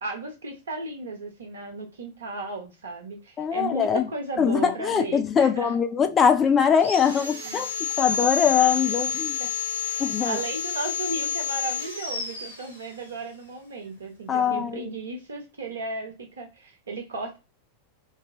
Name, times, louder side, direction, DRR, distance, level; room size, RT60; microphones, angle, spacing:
voice 1, 0.0-5.8 7.4-7.6 8.7-8.8 9.1-9.5 9.8-17.4, right 3 dB, 70° right, 1.0 m, -35 dB
voice 2, 3.4-4.1 4.4-7.7 8.0-9.4 10.0-10.4 14.3-14.9, left 7 dB, 25° left, 0.4 m, -22 dB
Sawing, 6.7-13.2, left 6 dB, 75° left, 1.1 m, -30 dB
3.1 x 2.1 x 2.9 m
figure-of-eight pair, 90°, 0 cm